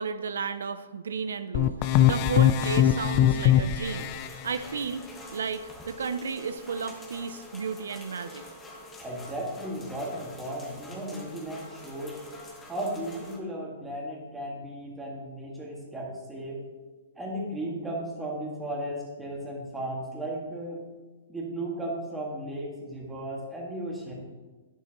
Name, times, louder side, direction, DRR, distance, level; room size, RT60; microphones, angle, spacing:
voice 1, 0.0-8.4, right 5 dB, 90° right, 11 dB, 0.4 m, -33 dB
sound 1, 1.5-4.3, left 11 dB, 35° left, 0.4 m, -22 dB
sound 2, 3.8-13.4, left 1 dB, 15° left, 1.3 m, -46 dB
voice 2, 9.0-12.2 12.7-16.6 17.1-20.8 21.3-24.1, right 1 dB, 5° right, -3 dB, 1.7 m, -35 dB
9.4 x 7.2 x 2.9 m, 1.3 s
hypercardioid pair, 150°, 0 cm